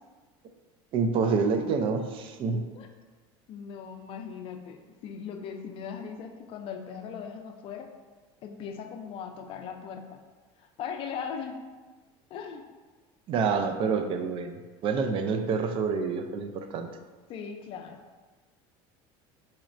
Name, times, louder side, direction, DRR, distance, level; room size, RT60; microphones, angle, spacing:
voice 1, 0.9-2.6 13.3-16.9, right 5 dB, 45° right, 7 dB, 0.4 m, -27 dB
voice 2, 3.5-7.9 8.4-10.2 10.6-11.6 12.3-12.7 17.3-18.0, left 7 dB, 45° left, 5 dB, 0.4 m, -39 dB
4.2 x 3.0 x 2.5 m, 1.3 s
supercardioid pair, 120°, 12 cm